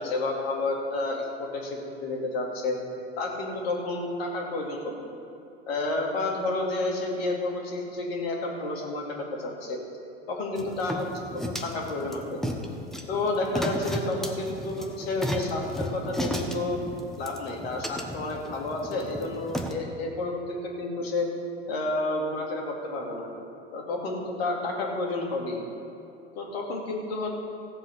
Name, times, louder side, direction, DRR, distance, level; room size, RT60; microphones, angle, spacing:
voice 1, 0.0-2.8 3.2-5.1 5.7-9.8 10.3-12.4 13.1-16.8 17.2-21.3 21.7-23.3 23.7-25.6 26.3-27.3, left 2 dB, 65° left, 0 dB, 2.6 m, -30 dB
sound 1, 10.6-19.7, equal, ahead, 1.1 m, -34 dB
15.5 x 7.7 x 5.8 m, 2.7 s
figure-of-eight pair, 80°, 33 cm